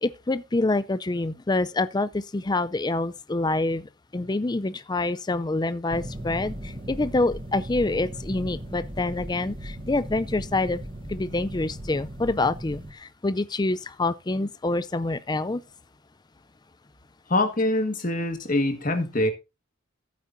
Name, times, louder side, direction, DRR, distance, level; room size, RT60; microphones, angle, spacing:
voice 1, 0.0-3.8 4.1-10.8 11.1-15.6, left 2 dB, 20° left, 0.4 m, -26 dB
sound 1, 5.9-12.9, right 1 dB, 25° right, 1.1 m, -37 dB
voice 2, 17.3-19.3, left 1 dB, 40° left, 1.7 m, -24 dB
14.5 x 8.4 x 2.7 m
head